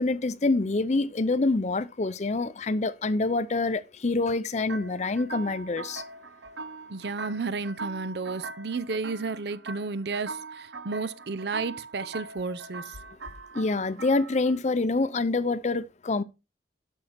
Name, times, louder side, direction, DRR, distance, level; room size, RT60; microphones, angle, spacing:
voice 1, 0.0-6.0 13.5-16.2, left 3 dB, 40° left, 0.5 m, -26 dB
sound 1, 4.7-14.6, right 3 dB, 90° right, 0.9 m, -41 dB
voice 2, 6.9-13.0, right 4 dB, 65° right, 0.6 m, -32 dB
11.5 x 5.6 x 4.3 m
head